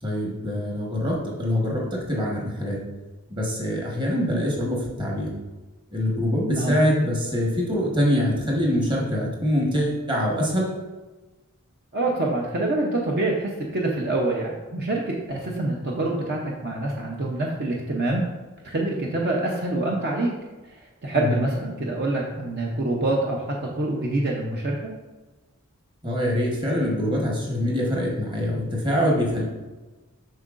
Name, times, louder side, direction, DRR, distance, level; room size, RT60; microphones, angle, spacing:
voice 1, 0.0-2.8 3.3-5.3 5.9-10.7 21.1-21.4 26.0-29.4, equal, 20° right, -2 dB, 1.2 m, -24 dB
voice 2, 11.9-18.2 18.6-20.3 21.0-23.4 23.8-24.9, right 2 dB, 45° right, -2 dB, 0.7 m, -26 dB
7.6 x 5.5 x 2.5 m, 1.2 s
head